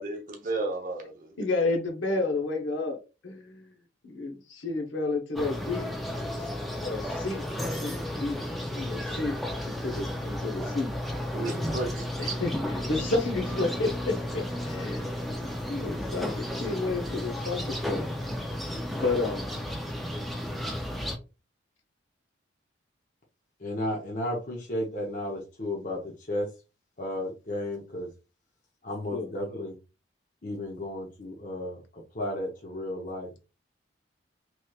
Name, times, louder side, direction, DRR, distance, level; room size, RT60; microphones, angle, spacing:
voice 1, 0.0-1.3 11.3-12.3, right 2 dB, 45° right, 0.9 m, -33 dB
voice 2, 1.4-3.7 4.0-5.9 6.4-6.5 6.8-8.4 8.8-9.4 9.7-10.9 12.2-15.1 15.4-18.1 18.9-19.5 29.1-29.3, left 3 dB, 80° left, 0.9 m, -31 dB
sound 1, 5.4-21.2, left 1 dB, ahead, 0.4 m, -33 dB
voice 3, 23.6-26.5 27.0-28.1 28.8-29.8 30.4-33.3, left 1 dB, 45° left, 0.8 m, -33 dB
3.2 x 3.1 x 2.3 m
head